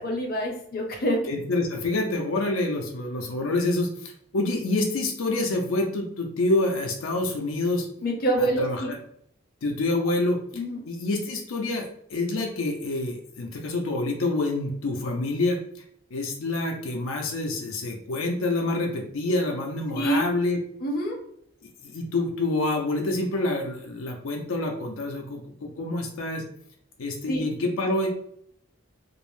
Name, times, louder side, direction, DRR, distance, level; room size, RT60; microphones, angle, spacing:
voice 1, 0.0-1.2 8.0-8.9 10.5-10.8 19.9-20.2 20.8-21.2 27.3-27.4, right 1 dB, 45° left, 0 dB, 0.6 m, -26 dB
voice 2, 1.3-7.9 8.4-9.0 9.6-15.6 16.1-20.6 21.6-26.4 27.0-28.1, left 2 dB, 85° left, 1 dB, 0.5 m, -27 dB
2.5 x 2.0 x 3.0 m, 0.69 s
head